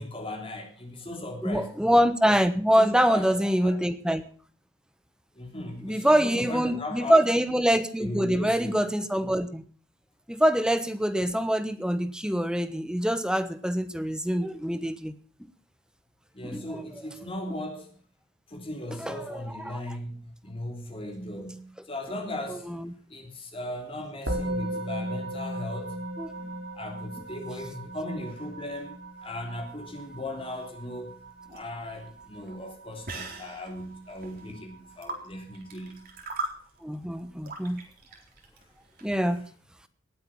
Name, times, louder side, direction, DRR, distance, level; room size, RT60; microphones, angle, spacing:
voice 1, 0.0-1.7 2.8-3.8 5.3-7.2 8.0-8.7 16.3-18.0 18.5-26.0 26.4-31.2 31.5-36.0 37.7-37.8, left 1 dB, 30° left, 2 dB, 3.3 m, -38 dB
voice 2, 1.4-4.2 5.8-9.6 10.3-15.1 16.5-16.8 19.0-19.8 26.2-26.3 36.8-37.8 39.0-39.4, equal, 5° right, 12 dB, 1.1 m, -25 dB
Musical instrument, 24.3-33.8, right 1 dB, 85° right, 5.1 m, -37 dB
sound 1, 31.2-39.2, right 2 dB, 45° right, 3.8 m, -41 dB
19.0 x 8.7 x 7.2 m, 0.44 s
head